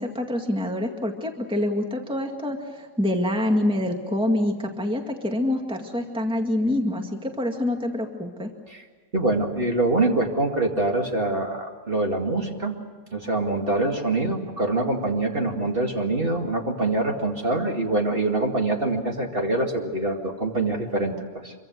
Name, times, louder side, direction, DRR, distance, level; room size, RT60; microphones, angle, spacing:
voice 1, 0.0-8.5, left 1 dB, 5° right, 3 dB, 2.0 m, -26 dB
voice 2, 9.1-12.8 13.1-21.5, right 2 dB, 40° right, 1 dB, 2.5 m, -25 dB
25.5 x 24.0 x 6.3 m, 1.5 s
omnidirectional pair, 1.5 m